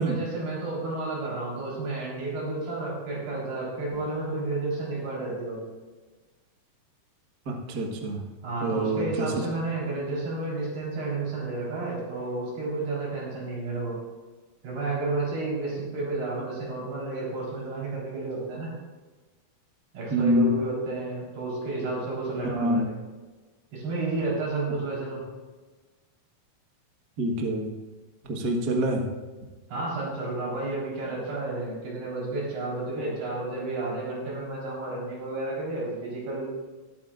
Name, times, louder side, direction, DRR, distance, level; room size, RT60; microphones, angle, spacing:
voice 1, 0.0-5.6 8.4-14.0 14.6-18.7 19.9-22.9 23.7-25.2 29.7-36.5, right 2 dB, 90° right, -5 dB, 6.2 m, -31 dB
voice 2, 7.4-8.2 8.6-9.3 16.4-16.5 20.1-20.5 22.4-22.8 27.2-27.7 28.2-29.1, right 1 dB, 70° right, 1 dB, 0.9 m, -26 dB
20.0 x 8.9 x 2.5 m, 1.3 s
omnidirectional pair, 4.4 m